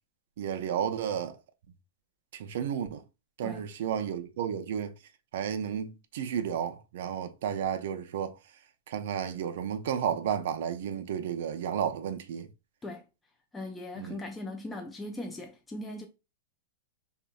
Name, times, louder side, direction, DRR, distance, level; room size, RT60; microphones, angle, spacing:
voice 1, 0.4-1.4 2.3-3.0 3.4-4.9 5.3-8.3 8.9-12.5 14.0-14.2, right 8 dB, 65° right, 0.4 m, -32 dB
voice 2, 13.5-16.1, left 1 dB, 10° left, 0.3 m, -39 dB
2.7 x 2.1 x 2.3 m
hypercardioid pair, 145°, 0 cm